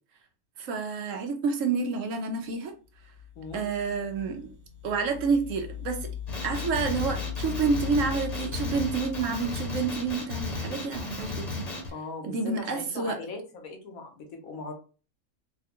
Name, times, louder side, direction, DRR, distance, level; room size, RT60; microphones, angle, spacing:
voice 1, 0.6-2.7 3.5-4.5 4.8-6.1 6.4-11.7 12.2-13.2, right 4 dB, 70° right, 1.0 m, -29 dB
sound 1, 2.9-10.5, left 9 dB, 20° right, 0.5 m, -39 dB
Male speech man speaking, 6.3-11.9, left 2 dB, 35° left, 0.9 m, -34 dB
voice 2, 11.9-14.7, left 3 dB, 75° left, 1.3 m, -39 dB
4.1 x 2.2 x 2.8 m
omnidirectional pair, 1.5 m